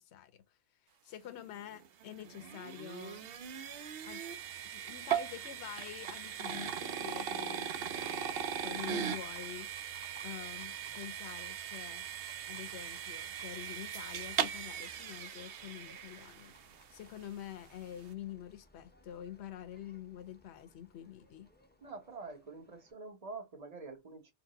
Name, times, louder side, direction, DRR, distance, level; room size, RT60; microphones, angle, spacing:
voice 1, 0.0-3.2 4.0-4.2 4.6-9.7 10.2-12.1 12.5-21.5, left 11 dB, 70° left, 0.8 m, -47 dB
sound 1, 1.6-16.8, right 8 dB, 65° right, 0.7 m, -39 dB
Livestock farm animals working animals, 3.0-22.9, left 1 dB, 15° left, 0.4 m, -62 dB
voice 2, 21.8-24.3, right 4 dB, 35° right, 1.0 m, -46 dB
4.5 x 2.1 x 3.9 m
omnidirectional pair, 1.2 m